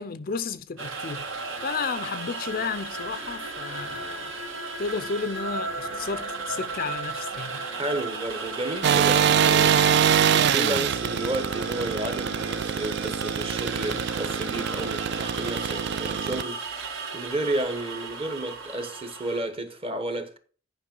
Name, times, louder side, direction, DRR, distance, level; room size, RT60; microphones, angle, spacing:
voice 1, 0.0-4.3 4.8-7.6, left 5 dB, 40° left, 0.5 m, -33 dB
sound 1, 0.8-19.4, right 3 dB, 70° right, 1.8 m, -35 dB
voice 2, 7.7-16.8 17.1-20.4, right 1 dB, 25° right, 1.0 m, -32 dB
sound 2, 8.8-16.4, right 8 dB, 50° right, 0.3 m, -24 dB
10.0 x 5.2 x 5.3 m
head